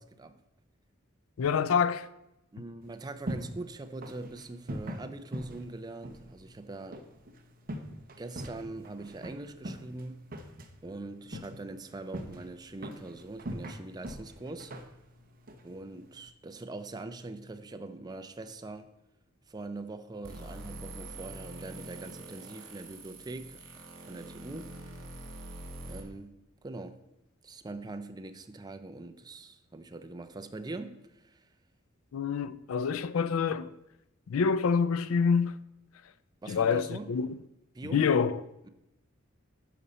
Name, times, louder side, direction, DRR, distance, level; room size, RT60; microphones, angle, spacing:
voice 1, 1.4-2.1 32.1-33.7 34.3-35.6 36.5-37.3 37.9-38.3, left 6 dB, 80° left, 0.4 m, -26 dB
voice 2, 2.5-7.0 8.2-10.3 10.8-14.7 15.6-18.9 19.5-23.6 24.0-24.7 25.9-27.0 27.4-31.5 36.4-37.2 37.7-38.1, right 2 dB, 20° right, 0.5 m, -42 dB
sound 1, 2.8-16.3, right 1 dB, 45° right, 0.8 m, -43 dB
sound 2, 20.2-26.0, right 2 dB, 70° right, 2.4 m, -45 dB
10.0 x 5.6 x 4.1 m
head